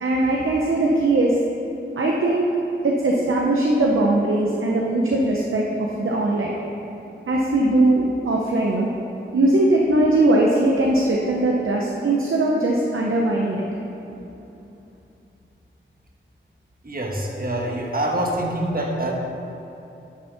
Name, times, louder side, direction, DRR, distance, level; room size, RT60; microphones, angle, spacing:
voice 1, 0.0-1.3 2.0-2.5 2.8-6.5 7.3-8.9 9.3-13.6, right 2 dB, 90° right, -2 dB, 0.8 m, -20 dB
voice 2, 16.8-19.1, right 1 dB, 45° right, 0 dB, 1.3 m, -25 dB
9.6 x 4.4 x 5.8 m, 2.9 s
wide cardioid pair, 45°, 20 cm